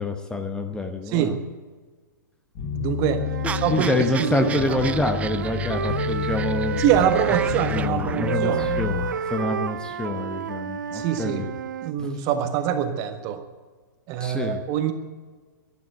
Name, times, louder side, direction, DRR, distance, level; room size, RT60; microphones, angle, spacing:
voice 1, 0.0-1.4 3.7-6.8 7.7-11.5 12.0-12.1 14.2-14.6, left 2 dB, 5° left, 6 dB, 1.0 m, -27 dB
sound 1, 2.5-9.1, left 5 dB, 40° left, 5.1 m, -30 dB
voice 2, 2.7-3.2 3.6-3.9 4.2-4.8 6.8-8.7 10.9-11.4 11.8-13.4 14.1-14.9, right 9 dB, 35° right, 8 dB, 1.5 m, -24 dB
Wind instrument woodwind instrument, 3.1-7.6 8.3-11.9, right 8 dB, 65° right, 0.6 m, -30 dB
sound 2, 3.4-9.4, right 7 dB, 10° right, 0.4 m, -36 dB
12.0 x 12.0 x 9.2 m, 1.4 s
figure-of-eight pair, 110°, 11 cm